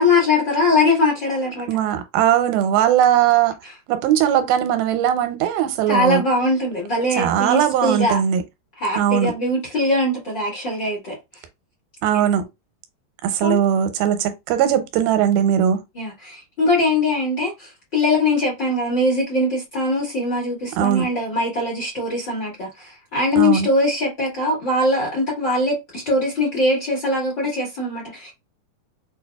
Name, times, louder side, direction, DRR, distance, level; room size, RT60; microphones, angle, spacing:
voice 1, 0.0-1.7 3.6-3.7 5.9-8.2 8.8-11.1 13.4-13.6 15.9-28.3, left 2 dB, 45° left, 1.5 m, -21 dB
voice 2, 1.7-3.5 3.9-6.2 7.2-8.4 9.0-9.3 12.0-12.4 13.2-15.8 20.8-21.0 23.4-23.7, right 10 dB, 85° right, 2.5 m, -19 dB
6.5 x 2.3 x 2.2 m
omnidirectional pair, 4.2 m